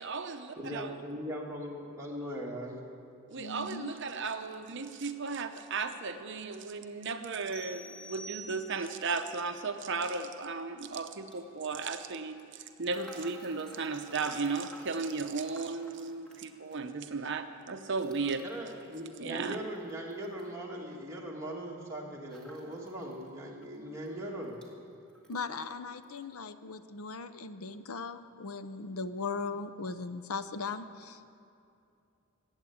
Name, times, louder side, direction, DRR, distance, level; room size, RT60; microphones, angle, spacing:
voice 1, 0.0-1.0 3.3-18.4 19.2-19.6, right 4 dB, 55° right, 7 dB, 0.7 m, -35 dB
voice 2, 0.6-2.8 18.4-24.6, right 1 dB, 15° right, -3 dB, 2.0 m, -40 dB
voice 3, 3.4-4.0 25.3-31.3, left 4 dB, 75° left, 11 dB, 0.7 m, -38 dB
sound 1, 7.5-9.1, right 1 dB, 25° left, 3.7 m, -47 dB
sound 2, 9.2-9.3 10.0-10.2 11.1-11.4 12.8-16.8 17.9-20.5 22.3-23.3 23.7-23.8 24.0-24.7 25.1-25.7 26.0-26.2, right 1 dB, 5° left, 2.1 m, -54 dB
20.5 x 8.1 x 8.5 m, 2.5 s
head